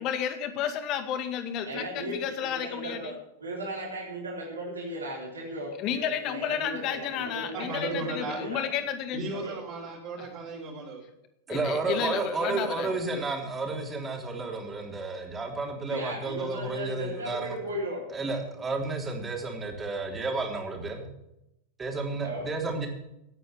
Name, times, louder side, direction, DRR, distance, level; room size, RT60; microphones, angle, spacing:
voice 1, 0.0-3.1 5.8-9.2 10.2-10.3 11.5-12.9, left 9 dB, 40° left, 9 dB, 2.1 m, -32 dB
voice 2, 1.6-3.1 3.4-8.7 9.3-9.5 15.9-18.1 22.2-22.5, right 1 dB, 70° right, -2 dB, 3.9 m, -36 dB
voice 3, 7.5-8.4 9.1-11.0 11.5-13.5, right 3 dB, 40° right, -4 dB, 4.2 m, -38 dB
voice 4, 11.5-17.5 18.1-21.1 21.8-22.9, right 3 dB, 15° right, 2 dB, 3.5 m, -32 dB
18.0 x 9.1 x 6.2 m, 0.85 s
figure-of-eight pair, 90°, 0 cm